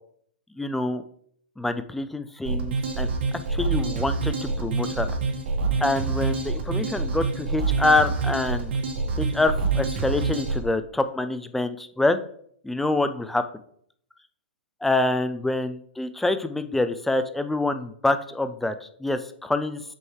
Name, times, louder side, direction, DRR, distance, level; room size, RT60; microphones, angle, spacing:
voice 1, 0.5-1.0 1.6-3.1 3.3-5.1 5.8-8.7 9.1-12.2 12.6-13.4 14.8-19.8, left 2 dB, 5° left, 10 dB, 0.3 m, -26 dB
sound 1, 2.4-10.6, right 4 dB, 65° right, 1.8 m, -26 dB
7.7 x 5.4 x 3.2 m, 0.65 s
hypercardioid pair, 155°, 6 cm